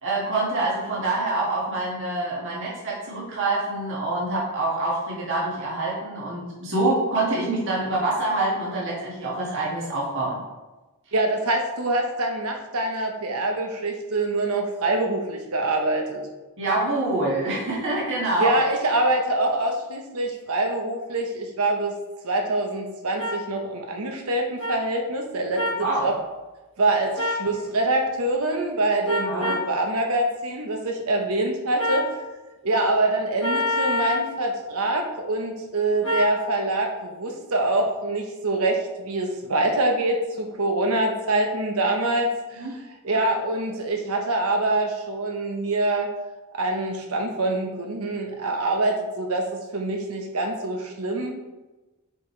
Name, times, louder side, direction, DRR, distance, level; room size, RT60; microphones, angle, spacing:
voice 1, 0.0-10.4 16.6-18.6 25.8-26.1 29.2-29.6 42.6-42.8, right 2 dB, 60° right, -6 dB, 2.0 m, -26 dB
voice 2, 11.1-16.2 18.4-21.9 22.2-26.1 26.8-32.1 32.6-42.7 43.0-46.1 46.5-51.3, right 2 dB, 85° right, 3 dB, 1.0 m, -25 dB
sound 1, 23.2-23.3 24.6-24.7 25.6-25.8 27.2-27.4 29.1-29.7 31.8-32.1 33.4-34.3 36.0-36.3, left 1 dB, 65° left, 1.4 m, -25 dB
7.6 x 5.1 x 3.3 m, 1.1 s
head